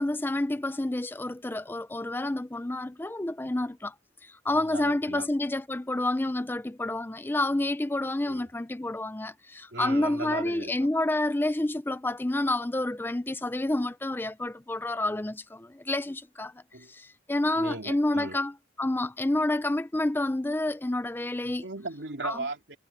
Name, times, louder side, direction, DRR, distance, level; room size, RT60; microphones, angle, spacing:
voice 1, 0.0-3.9 4.2-16.5 16.9-18.5 18.8-21.6 22.2-22.4, left 1 dB, 10° left, 0.4 m, -29 dB
voice 2, 4.5-5.3 8.3-8.4 9.7-10.8 16.7-16.9 17.5-18.4 21.4-22.8, right 3 dB, 75° right, 3.0 m, -37 dB
head